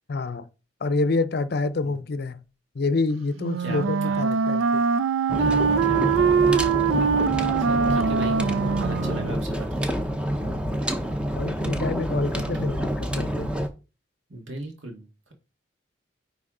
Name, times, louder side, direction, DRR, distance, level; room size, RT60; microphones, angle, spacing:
voice 1, 0.1-0.5 0.8-2.4 2.7-4.8 8.2-8.3 10.4-10.7 11.4-13.5, left 3 dB, 50° left, 0.5 m, -27 dB
Wind instrument woodwind instrument, 3.4-9.4, right 6 dB, 90° right, 0.4 m, -23 dB
voice 2, 3.6-4.2 5.4-6.5 7.6-10.1 12.2-12.4 14.3-15.1, right 2 dB, 70° right, 1.9 m, -38 dB
sound 1, 5.3-13.7, equal, 5° right, 0.6 m, -28 dB
9.8 x 3.4 x 3.7 m
head